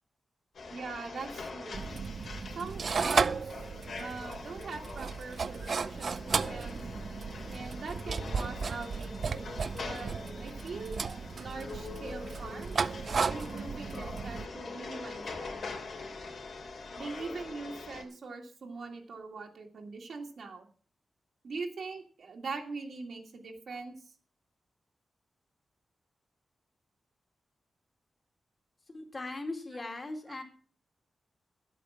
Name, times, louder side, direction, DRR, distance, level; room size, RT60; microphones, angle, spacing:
sound 1, 0.5-18.0, left 3 dB, 70° left, 2.7 m, -44 dB
voice 1, 0.7-1.8 2.6-3.6 4.0-6.8 7.5-9.5 9.8-11.0 11.4-12.8 13.2-15.5 17.0-20.7 21.4-24.0, right 4 dB, 70° right, 1 dB, 2.0 m, -42 dB
sound 2, 1.7-14.5, right 5 dB, 55° right, 0.6 m, -34 dB
voice 2, 28.9-30.4, left 2 dB, 30° left, 4 dB, 2.3 m, -39 dB
10.5 x 8.4 x 7.2 m, 0.43 s
wide cardioid pair, 145°, 0 cm